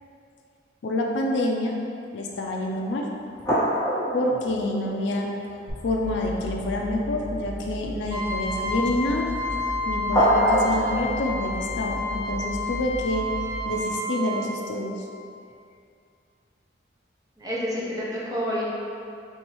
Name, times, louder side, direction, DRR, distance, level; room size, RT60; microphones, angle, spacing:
voice 1, 0.8-1.8 2.1-3.1 4.1-5.3 5.8-9.3 9.8-13.3 13.6-15.0, left 1 dB, 70° left, 0 dB, 0.4 m, -27 dB
sound 1, 2.3-2.4 3.0-3.1 3.4-5.7 6.0-6.1 6.5-6.7 10.1-11.2, equal, 20° left, 1.4 m, -24 dB
sound 2, 5.7-14.7, equal, 75° right, 1.1 m, -37 dB
Trumpet, 8.1-14.5, left 1 dB, 60° right, 0.7 m, -31 dB
voice 2, 17.4-18.7, equal, 20° right, -7 dB, 0.6 m, -28 dB
4.6 x 2.6 x 2.9 m, 2.5 s
head